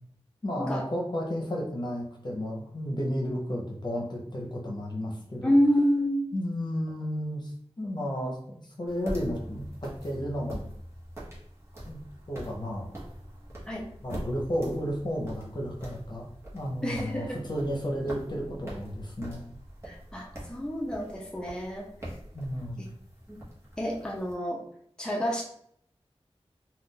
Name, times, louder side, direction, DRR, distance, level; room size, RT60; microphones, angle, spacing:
voice 1, 0.4-5.5 6.3-7.5 7.8-10.6 11.9-12.0 12.3-12.9 14.0-16.3 16.5-19.4 22.3-22.8, equal, 45° left, -1 dB, 0.8 m, -32 dB
voice 2, 5.4-6.2 13.7-13.9 16.8-17.4 19.8-21.9 23.3-23.4 23.8-24.6 25.0-25.4, equal, 5° left, -2 dB, 0.5 m, -28 dB
sound 1, 8.9-24.3, right 1 dB, 25° right, 1.0 m, -43 dB
2.4 x 2.3 x 3.7 m, 0.68 s
wide cardioid pair, 45°, 11 cm